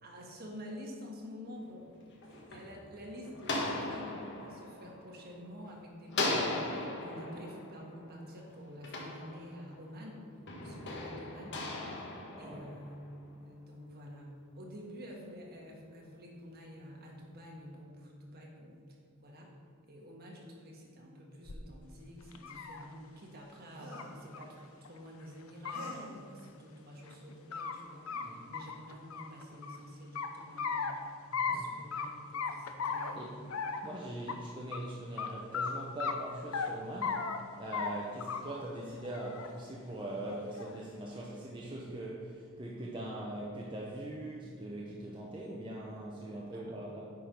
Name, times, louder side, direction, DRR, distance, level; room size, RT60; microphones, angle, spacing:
voice 1, 0.0-10.3 10.6-11.6 12.0-13.0 13.3-18.8 19.2-19.5 19.8-30.9 31.4-33.3 34.2-34.3 37.7-37.8 46.5-46.8, equal, 45° right, -2 dB, 1.6 m, -49 dB
sound 1, 1.9-5.6 6.1-9.9 10.5-13.1, left 2 dB, 55° left, 1.2 m, -38 dB
voice 2, 12.3-12.6 28.2-28.5 31.3-31.7 33.1-33.4 33.8-47.0, right 1 dB, 25° right, -4 dB, 0.8 m, -42 dB
sound 2, 21.5-21.6 22.2-22.8 23.9-24.0 24.3-24.4 24.8-24.9 25.5-25.9 27.1-27.7 28.1-28.2 28.5-29.8 30.2-30.9 31.3-31.6 31.9-32.1 32.3-33.1 33.5-33.9 34.3-34.4 34.7-34.8 35.2-35.3 35.5-35.7 36.0-36.7 37.0-37.4 37.7-37.9 38.2-38.6 39.0-39.5 40.3-40.8, left 5 dB, 75° left, 0.6 m, -36 dB
sound 3, 23.7-24.3 25.7-26.2 27.6-27.7 28.1-28.4, right 1 dB, 85° right, 2.0 m, -48 dB
9.3 x 4.6 x 5.3 m, 2.4 s
head